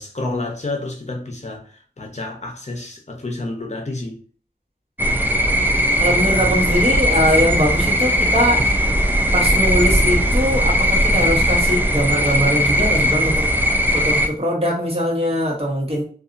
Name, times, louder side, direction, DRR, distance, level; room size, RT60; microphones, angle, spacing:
voice 1, 0.0-4.2, left 2 dB, 45° left, 0.7 m, -29 dB
sound 1, 5.0-14.3, equal, 10° right, 0.4 m, -18 dB
voice 2, 6.0-8.6 9.3-13.5 13.9-16.0, equal, 35° right, 1.1 m, -21 dB
2.7 x 2.4 x 2.5 m
wide cardioid pair, 60°, 17 cm